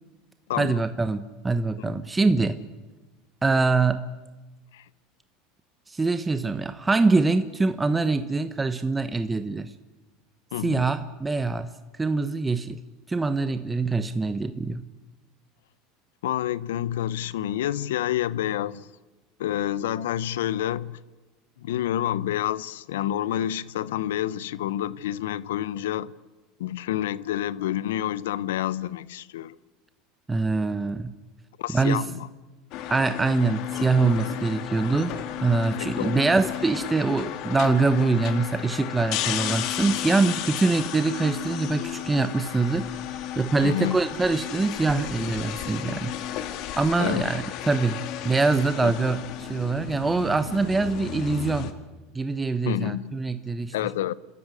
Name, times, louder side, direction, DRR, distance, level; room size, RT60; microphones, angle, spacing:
voice 1, 0.6-2.6 3.4-4.0 5.9-9.7 10.6-11.7 12.0-12.8 13.1-14.8 30.3-31.1 31.7-32.0 32.9-42.9 43.4-46.1 46.8-51.7 52.1-53.7, right 3 dB, 15° right, 1.0 m, -24 dB
voice 2, 10.5-10.9 16.2-18.9 19.4-21.0 21.6-26.1 26.6-29.6 31.6-32.3 35.7-36.2 43.6-44.0 45.9-46.1 47.0-47.3 48.8-48.9 52.7-53.2 53.7-54.1, left 12 dB, 90° left, 0.8 m, -28 dB
sound 1, 32.7-51.7, left 11 dB, 60° left, 2.2 m, -33 dB
28.0 x 13.0 x 9.8 m
supercardioid pair, 110°, 0 cm